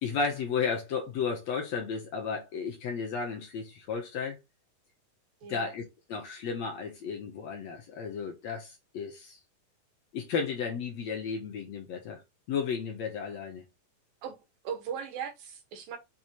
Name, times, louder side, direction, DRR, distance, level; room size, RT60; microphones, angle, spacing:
voice 1, 0.0-4.4 5.5-9.4 10.1-12.2 12.5-13.6, left 5 dB, 60° left, 2.1 m, -33 dB
voice 2, 5.4-5.7 14.2-14.4 14.6-16.0, right 7 dB, 80° right, 3.3 m, -38 dB
6.5 x 3.5 x 4.4 m
omnidirectional pair, 4.0 m